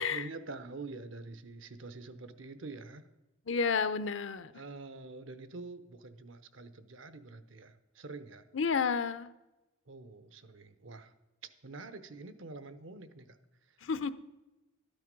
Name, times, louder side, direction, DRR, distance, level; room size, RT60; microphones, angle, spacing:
voice 1, 0.0-3.0 4.5-8.4 9.9-11.1 11.6-13.4, right 3 dB, 70° right, 12 dB, 0.9 m, -46 dB
voice 2, 3.5-4.5 8.5-9.3 13.8-14.1, left 5 dB, 65° left, 14 dB, 0.6 m, -31 dB
13.0 x 9.2 x 5.3 m, 1.0 s
head